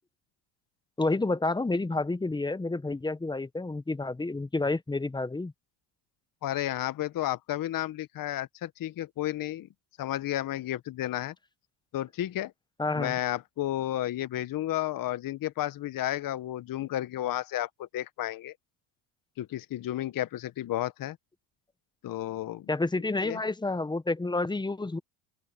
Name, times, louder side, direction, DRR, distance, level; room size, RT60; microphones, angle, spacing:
voice 1, 1.0-5.5 12.8-13.2 22.7-25.0, left 2 dB, 10° left, 0.9 m, -29 dB
voice 2, 6.4-9.7 10.0-11.3 11.9-12.5 13.0-18.5 19.4-21.2 22.0-22.7 23.2-23.4, left 13 dB, 45° left, 1.0 m, -32 dB
open air
supercardioid pair, 95°, 49 cm